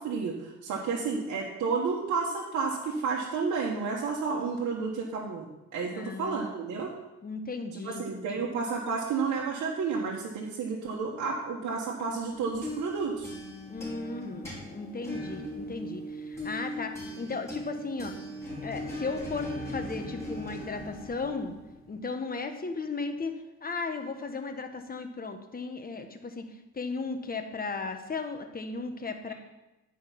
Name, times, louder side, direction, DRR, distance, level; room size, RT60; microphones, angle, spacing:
voice 1, 0.0-6.9 7.8-13.3, right 5 dB, 70° right, -2 dB, 1.3 m, -31 dB
voice 2, 5.9-6.4 7.2-8.4 13.6-18.1 18.6-21.5 21.9-26.4 26.7-29.3, left 4 dB, 30° left, 6 dB, 1.1 m, -36 dB
sound 1, 12.3-21.9, left 1 dB, 10° left, 3.7 m, -39 dB
10.5 x 4.8 x 5.7 m, 1.0 s
cardioid pair, 90°, 30 cm